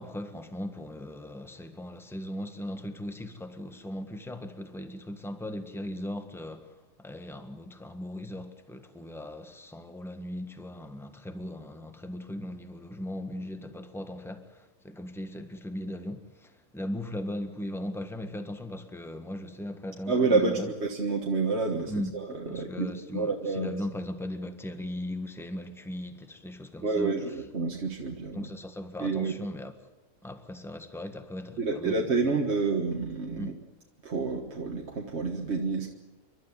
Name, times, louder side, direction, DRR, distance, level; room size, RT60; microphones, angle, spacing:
voice 1, 0.0-20.7 21.9-22.1 22.5-27.1 28.3-29.7 30.2-32.1 33.4-33.5, left 1 dB, ahead, 1.5 m, -38 dB
voice 2, 20.1-23.7 26.8-28.5 29.0-29.3 31.6-33.6 34.0-35.9, right 4 dB, 45° right, 1.8 m, -29 dB
29.0 x 12.5 x 9.8 m
omnidirectional pair, 1.6 m